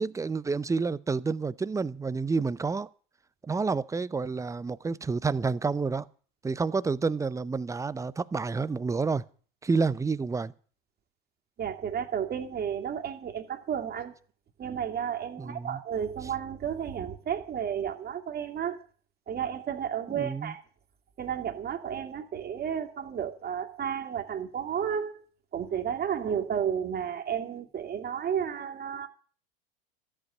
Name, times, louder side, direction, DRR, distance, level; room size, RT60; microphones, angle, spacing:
voice 1, 0.0-2.9 3.4-6.1 6.4-9.2 9.6-10.5 15.4-15.8 20.2-20.5, right 4 dB, 10° right, 0.6 m, -29 dB
voice 2, 11.6-14.1 14.6-18.8 19.3-20.6 21.2-25.2 25.5-29.1, right 8 dB, 30° right, 2.4 m, -32 dB
13.5 x 8.1 x 9.8 m
hypercardioid pair, 95°, 30 cm